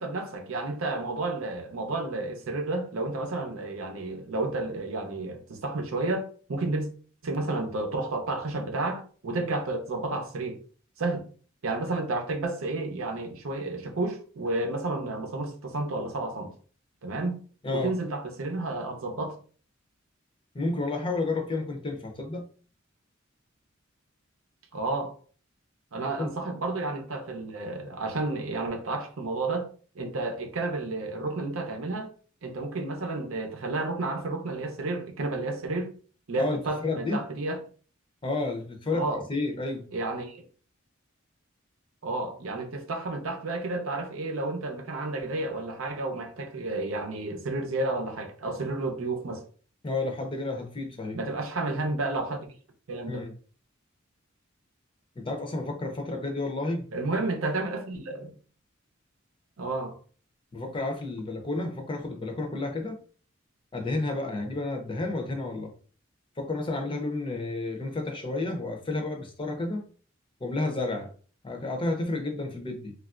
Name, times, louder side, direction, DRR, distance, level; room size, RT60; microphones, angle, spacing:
voice 1, 0.0-6.9 7.2-10.6 11.0-11.3 11.6-16.5 17.0-17.4 17.7-19.4 24.7-25.1 25.9-29.7 29.9-32.1 32.4-35.9 36.3-37.6 38.9-39.2 39.9-40.4 42.0-49.4 51.1-52.5 52.9-53.2 56.9-58.3 59.6-60.0, right 2 dB, 90° right, 0.7 m, -31 dB
voice 2, 20.5-22.4 26.2-26.3 36.4-37.2 38.2-39.8 49.8-51.2 53.1-53.3 55.2-56.9 60.5-63.0 63.7-65.7 66.4-69.8 70.4-71.1 71.4-72.9, left 2 dB, 25° left, 0.6 m, -31 dB
3.2 x 2.4 x 2.4 m
head